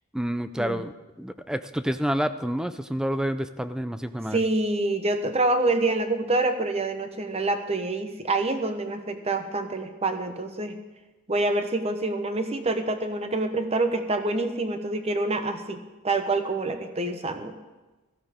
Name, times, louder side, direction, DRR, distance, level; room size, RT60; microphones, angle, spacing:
voice 1, 0.1-0.9 1.2-4.4, equal, 5° right, 11 dB, 0.4 m, -28 dB
voice 2, 4.3-10.8 11.3-17.5, right 2 dB, 30° right, 7 dB, 1.0 m, -26 dB
16.5 x 14.0 x 3.7 m, 1.2 s
head